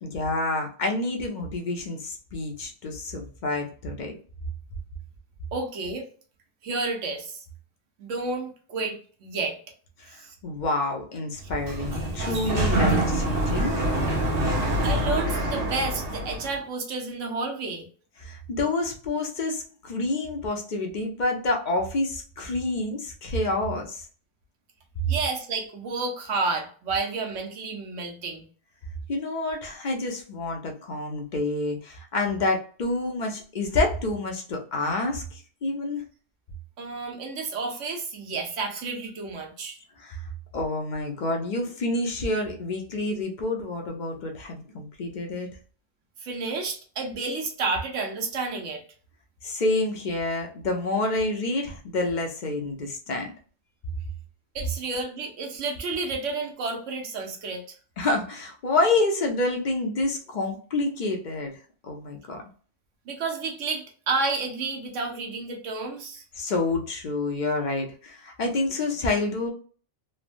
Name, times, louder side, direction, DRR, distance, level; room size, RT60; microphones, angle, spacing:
voice 1, 0.0-4.1 10.0-13.8 18.2-24.0 29.1-36.0 40.0-40.2 40.5-45.5 49.4-53.3 58.0-61.5 61.8-62.4 66.4-69.5, left 2 dB, 50° left, 2 dB, 0.6 m, -28 dB
voice 2, 5.5-6.0 6.6-7.4 8.0-9.6 10.2-10.3 12.3-12.4 14.8-17.9 25.1-28.5 36.8-39.8 46.2-48.8 54.5-57.6 63.1-66.2, right 3 dB, 85° right, 2 dB, 1.1 m, -30 dB
Sliding door, 11.4-16.5, right 1 dB, 55° right, 1.0 m, -25 dB
3.2 x 2.1 x 2.4 m, 0.41 s
omnidirectional pair, 1.2 m